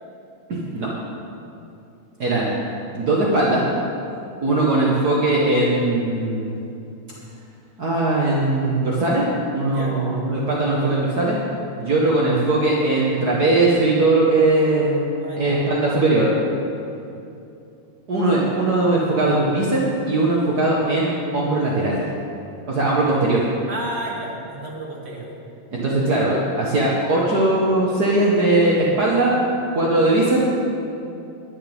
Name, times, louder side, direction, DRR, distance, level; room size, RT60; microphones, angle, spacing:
voice 1, 0.5-0.9 2.2-2.5 2.9-3.7 4.4-6.5 7.8-9.2 9.5-11.4 11.8-15.0 15.4-16.4 18.1-22.0 22.7-23.5 25.7-29.4 29.7-30.5, right 2 dB, 50° right, -5 dB, 1.1 m, -19 dB
voice 2, 15.2-15.5 23.7-25.3, right 1 dB, 25° right, -3 dB, 1.7 m, -32 dB
21.5 x 11.0 x 3.6 m, 2.7 s
omnidirectional pair, 3.9 m